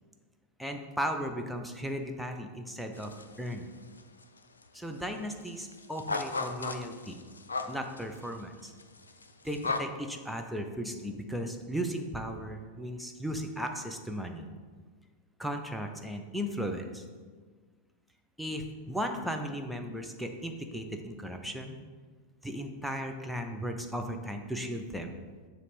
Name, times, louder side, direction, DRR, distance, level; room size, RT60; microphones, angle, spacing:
voice 1, 0.6-3.1 3.4-3.7 4.7-7.2 7.7-8.7 9.4-14.5 15.4-17.0 18.4-21.8 22.4-25.1, equal, ahead, 3 dB, 0.6 m, -36 dB
sound 1, 2.9-3.6 3.8-4.6 4.9-5.0 5.3-9.8, left 3 dB, 75° left, 0.4 m, -36 dB
6.7 x 3.1 x 5.1 m, 1.5 s
figure-of-eight pair, 90°, 0 cm